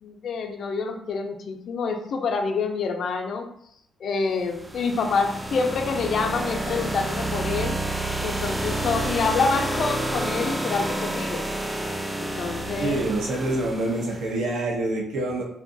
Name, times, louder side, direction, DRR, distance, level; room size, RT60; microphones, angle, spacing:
voice 1, 0.0-3.5 4.0-7.8 8.2-11.5 12.2-13.0, left 4 dB, 60° left, 4 dB, 0.4 m, -27 dB
sound 1, 4.4-14.2, right 1 dB, 10° right, 0.3 m, -29 dB
voice 2, 12.8-15.4, right 2 dB, 80° right, -1 dB, 0.6 m, -26 dB
2.7 x 2.2 x 2.6 m, 0.71 s
cardioid pair, 90°, 0 cm